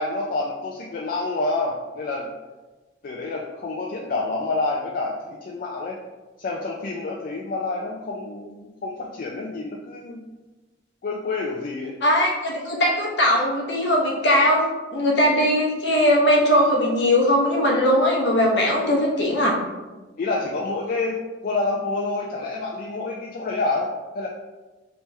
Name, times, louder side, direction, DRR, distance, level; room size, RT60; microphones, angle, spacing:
voice 1, 0.0-2.3 3.0-6.0 6.4-10.2 11.0-12.0 20.2-24.3, left 3 dB, 50° left, -2 dB, 0.3 m, -28 dB
voice 2, 12.0-19.6, equal, 65° left, -2 dB, 0.8 m, -20 dB
3.2 x 3.0 x 3.2 m, 1.2 s
head